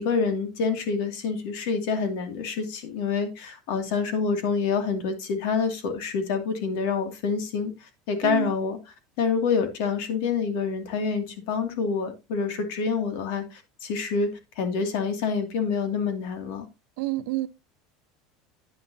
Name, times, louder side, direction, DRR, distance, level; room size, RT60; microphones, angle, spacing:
voice 1, 0.0-16.7, left 5 dB, 65° left, 2.5 m, -27 dB
voice 2, 17.0-17.5, right 19 dB, 60° right, 0.9 m, -28 dB
9.6 x 9.5 x 2.8 m
cardioid pair, 175°, 0 cm